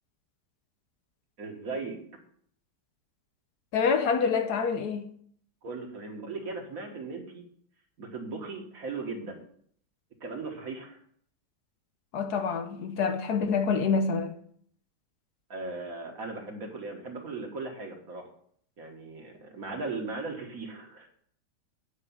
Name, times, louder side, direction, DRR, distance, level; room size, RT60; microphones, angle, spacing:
voice 1, 1.4-2.0 5.6-7.5 8.0-9.4 10.2-11.0 15.5-18.3 18.8-21.1, right 3 dB, 55° right, 1.9 m, -38 dB
voice 2, 3.7-5.1 12.1-14.4, left 5 dB, 70° left, 1.3 m, -27 dB
9.1 x 4.8 x 7.0 m
omnidirectional pair, 1.9 m